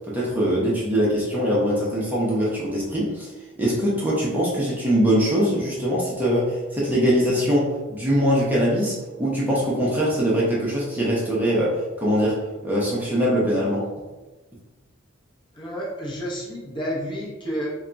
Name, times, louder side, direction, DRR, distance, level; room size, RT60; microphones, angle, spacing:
voice 1, 0.1-3.3 3.6-13.9, equal, 10° right, -6 dB, 0.7 m, -22 dB
voice 2, 15.5-17.7, equal, 25° left, -5 dB, 0.8 m, -30 dB
3.5 x 2.3 x 3.9 m, 1.1 s
head